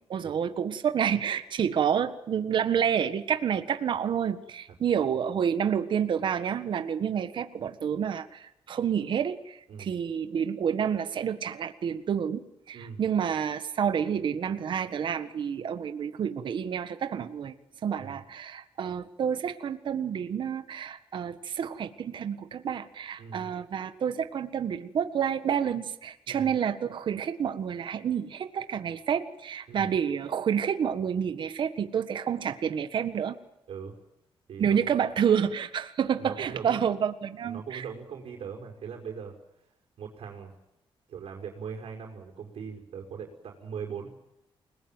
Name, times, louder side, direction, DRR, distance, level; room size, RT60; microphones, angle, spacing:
voice 1, 0.1-17.5 17.8-33.4 34.6-37.8, right 8 dB, 55° right, 10 dB, 1.6 m, -29 dB
voice 2, 23.2-23.5 26.3-26.5 29.7-29.9 33.7-33.9 34.5-35.0 36.2-36.9 37.4-39.3 40.0-40.5 41.1-44.1, right 6 dB, 70° right, 0 dB, 5.3 m, -40 dB
29.5 x 20.0 x 9.1 m, 0.87 s
wide cardioid pair, 170°, 10 cm